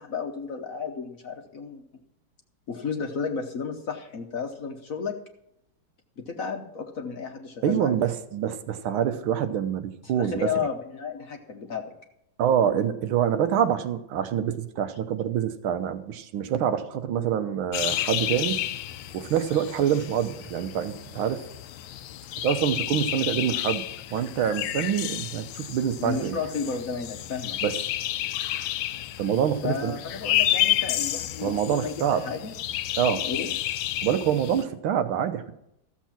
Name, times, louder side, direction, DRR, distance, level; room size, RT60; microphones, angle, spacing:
voice 1, 0.0-1.8 2.7-5.2 6.2-7.9 10.0-11.8 26.0-27.6 29.6-32.6 33.2-33.5, left 5 dB, 50° left, 4 dB, 1.1 m, -33 dB
voice 2, 7.6-10.5 12.4-18.6 19.1-21.4 22.4-23.8 24.1-26.4 27.6-27.7 29.2-29.9 31.4-32.2 33.0-33.3 34.0-35.5, right 9 dB, 80° right, 10 dB, 1.7 m, -26 dB
sound 1, 17.7-34.6, left 13 dB, 80° left, 1.4 m, -31 dB
14.0 x 7.3 x 5.8 m, 0.80 s
omnidirectional pair, 2.2 m